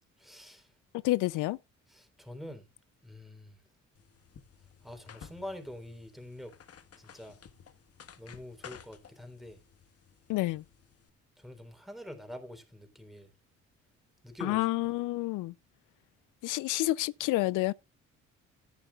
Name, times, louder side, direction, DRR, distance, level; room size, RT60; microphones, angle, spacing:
voice 1, 0.2-0.7 1.9-2.7 3.0-3.6 4.8-6.5 7.0-7.4 8.2-9.6 11.4-13.3 14.2-14.7, left 1 dB, ahead, 3.7 m, -45 dB
voice 2, 1.0-1.6 10.3-10.6 14.4-15.5 16.4-17.7, left 18 dB, 90° left, 0.5 m, -29 dB
sound 1, 3.9-11.1, left 7 dB, 50° left, 1.5 m, -54 dB
14.5 x 10.0 x 2.3 m
cardioid pair, 90°, 30 cm